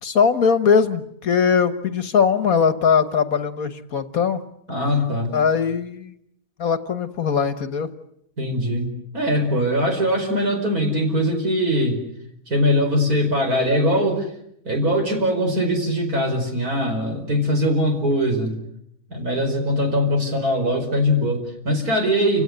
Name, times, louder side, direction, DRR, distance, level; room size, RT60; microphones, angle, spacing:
voice 1, 0.0-4.4 5.3-6.2 6.6-7.9, left 6 dB, 60° left, 11 dB, 1.6 m, -20 dB
voice 2, 4.7-5.3 8.4-12.0 12.5-14.3 14.6-18.5 19.1-22.4, equal, 65° right, 4 dB, 5.5 m, -21 dB
29.5 x 17.0 x 9.7 m, 0.77 s
omnidirectional pair, 1.7 m